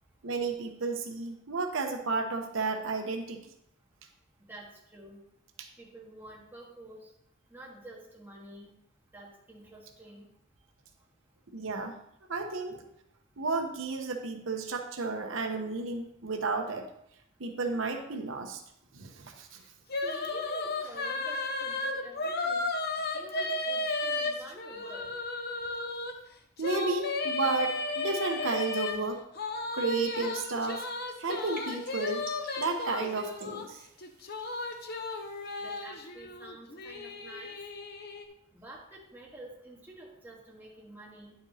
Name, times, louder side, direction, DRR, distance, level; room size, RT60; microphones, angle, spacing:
voice 1, 0.2-3.5 5.6-5.7 11.5-11.9 12.3-12.8 13.4-16.9 17.4-18.6 18.9-19.6 26.6-29.2 29.7-30.9 31.2-32.3 32.6-33.8, right 3 dB, 75° right, 4 dB, 0.8 m, -32 dB
voice 2, 4.5-5.2 5.8-7.1 7.5-8.7 9.1-10.3 20.0-22.7 23.1-25.1 35.6-37.5 38.5-41.3, right 1 dB, 10° right, -3 dB, 1.5 m, -48 dB
sound 1, 19.9-26.1 26.6-28.9 29.4-33.6 34.0-38.2, left 3 dB, 50° left, 0.8 m, -34 dB
sound 2, 30.6-35.8, right 4 dB, 45° right, 1.5 m, -53 dB
9.9 x 7.8 x 2.8 m, 0.76 s
head